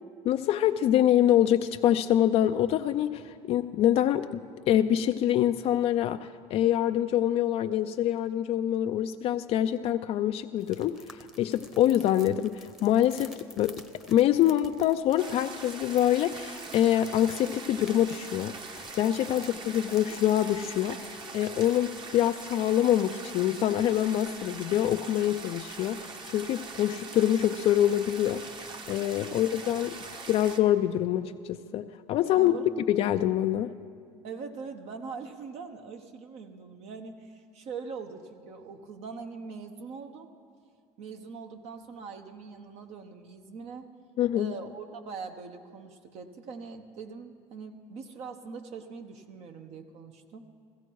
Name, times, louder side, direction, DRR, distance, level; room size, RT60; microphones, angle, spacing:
voice 1, 0.2-13.8 14.1-30.0 30.3-32.6 32.9-33.7 44.2-44.5, left 11 dB, 50° left, 8 dB, 0.4 m, -25 dB
sound 1, 10.6-20.4, left 1 dB, 5° right, 0.9 m, -51 dB
sound 2, 15.2-30.6, right 4 dB, 40° right, 1.1 m, -42 dB
voice 2, 32.4-32.7 34.2-40.3 41.0-43.9 44.3-50.4, right 5 dB, 55° right, 5 dB, 1.0 m, -42 dB
15.5 x 15.5 x 4.6 m, 2.1 s
cardioid pair, 115°, 13 cm